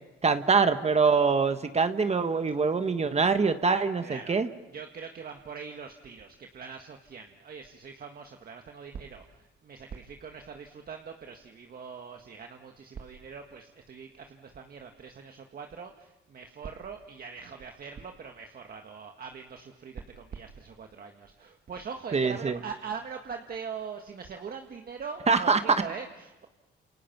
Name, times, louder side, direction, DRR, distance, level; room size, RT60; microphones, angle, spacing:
voice 1, 0.2-4.5 22.1-22.6 25.3-25.8, right 4 dB, 35° right, 9 dB, 1.3 m, -24 dB
voice 2, 4.0-4.4 4.7-26.5, right 6 dB, 50° right, 4 dB, 1.7 m, -42 dB
29.0 x 28.0 x 6.0 m, 1.1 s
cardioid pair, 90°, 20 cm